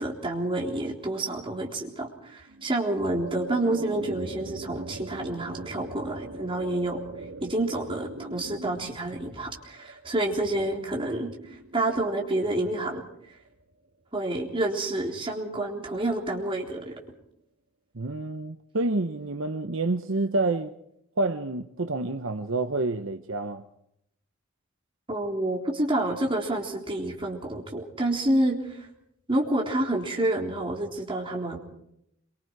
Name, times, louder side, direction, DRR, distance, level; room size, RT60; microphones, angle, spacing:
voice 1, 0.0-7.0 7.4-11.3 11.7-13.0 14.1-17.0 25.1-28.9 29.3-31.6, right 1 dB, 25° right, 3.8 m, -28 dB
sound 1, 2.5-13.6, right 2 dB, 85° right, 2.1 m, -42 dB
voice 2, 17.9-20.7 21.2-23.6, right 2 dB, 60° right, 0.9 m, -28 dB
27.0 x 24.0 x 4.7 m
head